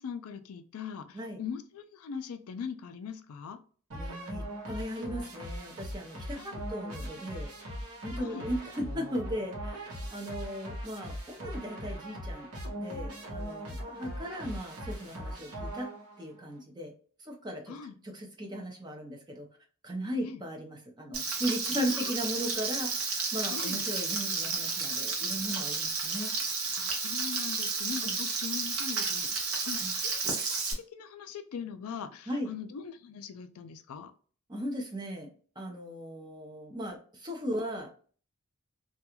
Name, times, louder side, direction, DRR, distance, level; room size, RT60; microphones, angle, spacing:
voice 1, 0.0-3.6 6.4-6.7 8.2-8.5 17.7-18.0 20.2-20.4 21.9-22.1 23.5-23.8 26.7-30.2 30.5-34.1, left 6 dB, 75° left, 9 dB, 0.4 m, -41 dB
voice 2, 3.9-7.5 8.0-12.5 12.7-15.9 16.2-16.9 17.2-17.7 18.0-19.5 19.8-26.3 28.0-28.2 29.7-29.9 32.3-32.5 34.5-38.0, equal, 20° right, 1 dB, 0.6 m, -37 dB
sound 1, 3.9-16.3, equal, 90° right, 0.9 m, -40 dB
Frying (food), 21.1-30.7, right 4 dB, 65° right, 0.7 m, -32 dB
2.4 x 2.3 x 2.9 m, 0.42 s
head